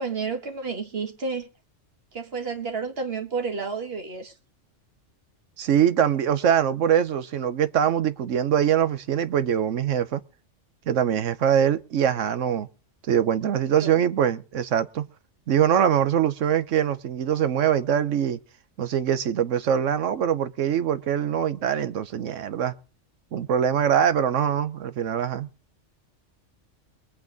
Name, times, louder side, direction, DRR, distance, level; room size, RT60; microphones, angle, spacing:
voice 1, 0.0-1.5 2.1-4.3 13.8-14.0, right 4 dB, 55° right, 1.8 m, -31 dB
voice 2, 5.6-10.2 10.9-12.7 13.1-15.1 15.5-18.4 18.8-22.7 23.3-25.5, right 9 dB, 85° right, 1.2 m, -23 dB
22.0 x 8.5 x 4.0 m
omnidirectional pair, 1.3 m